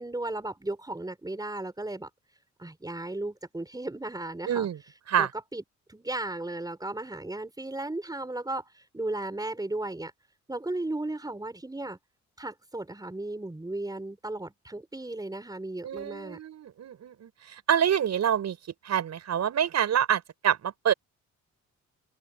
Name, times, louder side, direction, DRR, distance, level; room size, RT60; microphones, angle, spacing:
voice 1, 0.0-2.1 2.6-4.7 5.2-5.6 5.9-10.1 10.5-12.0 12.4-16.4, right 2 dB, 10° right, 5.8 m, -35 dB
voice 2, 4.5-4.8 5.1-5.3 15.8-17.3 17.7-18.6 18.8-20.9, right 9 dB, 60° right, 6.2 m, -26 dB
open air
cardioid pair, 90°, 30 cm